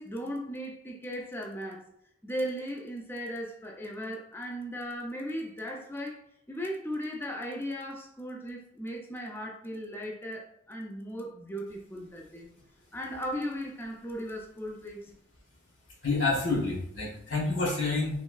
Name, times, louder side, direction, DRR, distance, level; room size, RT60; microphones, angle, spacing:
voice 1, 0.0-1.9 2.2-6.2 6.5-12.5 12.9-15.1, equal, 10° left, 0 dB, 0.4 m, -37 dB
voice 2, 16.0-18.2, left 3 dB, 75° left, -3 dB, 1.1 m, -28 dB
3.0 x 2.6 x 2.3 m, 0.71 s
head